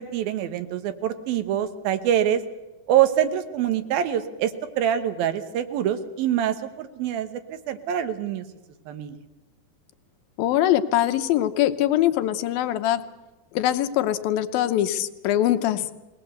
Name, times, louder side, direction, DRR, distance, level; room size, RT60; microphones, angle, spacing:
voice 1, 0.0-2.4 2.9-8.4 8.9-9.2, right 10 dB, 85° right, 10 dB, 3.0 m, -25 dB
voice 2, 10.4-13.0 13.5-15.9, left 12 dB, 85° left, 9 dB, 2.7 m, -22 dB
21.0 x 18.5 x 8.0 m, 1.1 s
omnidirectional pair, 4.1 m